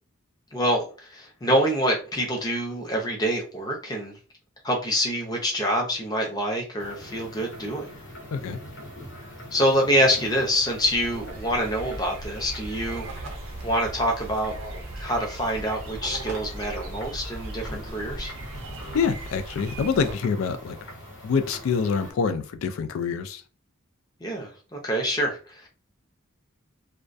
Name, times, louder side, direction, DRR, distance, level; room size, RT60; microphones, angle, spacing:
voice 1, 0.5-4.1 4.6-7.9 9.5-13.1 13.6-14.6 15.0-18.3 24.2-25.7, equal, 20° left, 0 dB, 0.6 m, -26 dB
sound 1, 6.8-22.1, equal, 65° left, 0.9 m, -43 dB
sound 2, 10.3-20.1, right 2 dB, 90° right, 0.6 m, -38 dB
voice 2, 18.9-20.8 21.2-23.4, left 5 dB, 80° left, 9 dB, 0.3 m, -26 dB
2.2 x 2.2 x 2.5 m, 0.37 s
head